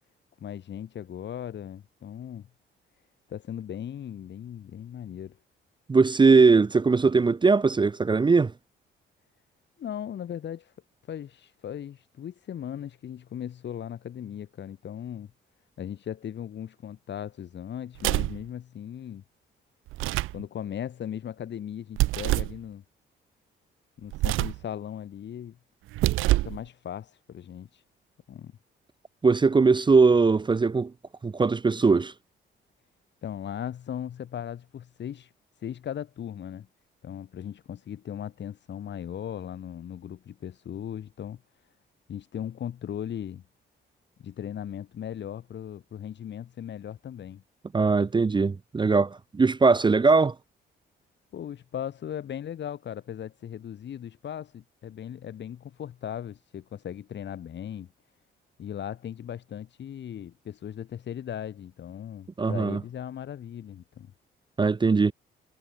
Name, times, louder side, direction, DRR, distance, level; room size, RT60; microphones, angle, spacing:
voice 1, 0.4-2.5 3.3-5.4 9.8-10.7 11.1-15.3 15.8-19.2 20.3-22.8 24.0-25.6 26.4-27.7 28.3-28.5 33.2-35.3 35.6-36.7 37.0-41.4 42.1-43.4 44.2-47.4 51.3-57.9 58.6-64.1, left 9 dB, 65° left, 6.7 m, -38 dB
voice 2, 5.9-8.5 29.2-30.9 31.2-32.1 47.7-50.3 62.4-62.8 64.6-65.1, right 4 dB, 25° right, 0.8 m, -20 dB
sound 1, 18.0-18.4 19.9-20.4 22.0-22.6 24.1-24.6 25.9-26.6, right 18 dB, 90° right, 0.6 m, -25 dB
cardioid pair, 90°, 20 cm